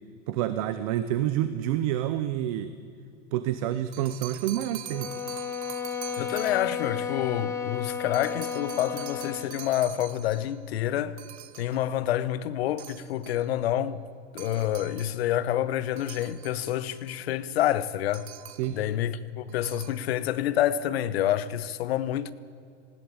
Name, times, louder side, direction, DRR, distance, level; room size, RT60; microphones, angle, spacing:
voice 1, 0.3-2.7 3.3-5.1 18.6-18.8, right 12 dB, 30° right, 0.6 m, -28 dB
sound 1, 3.7-6.8 8.1-10.6 11.2-11.9 12.8-13.5 14.4-15.2 16.0-17.2 18.1-18.8 19.5-20.1, right 12 dB, 65° right, 1.5 m, -44 dB
sound 2, 4.9-9.6, left 7 dB, 10° left, 0.9 m, -33 dB
voice 2, 6.2-11.2 11.6-14.0 14.3-18.3 18.7-22.3, left 12 dB, 60° left, 1.1 m, -28 dB
19.5 x 17.0 x 8.6 m
supercardioid pair, 175°, 35 cm